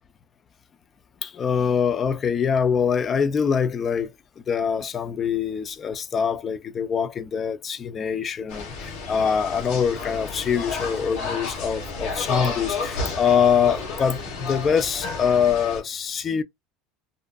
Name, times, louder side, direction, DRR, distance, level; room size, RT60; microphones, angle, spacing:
voice 1, 1.2-4.1 4.5-16.4, left 7 dB, 30° left, 0.3 m, -24 dB
sound 1, 8.5-15.8, left 3 dB, 70° left, 0.9 m, -31 dB
2.5 x 2.4 x 2.2 m
supercardioid pair, 135°, 0 cm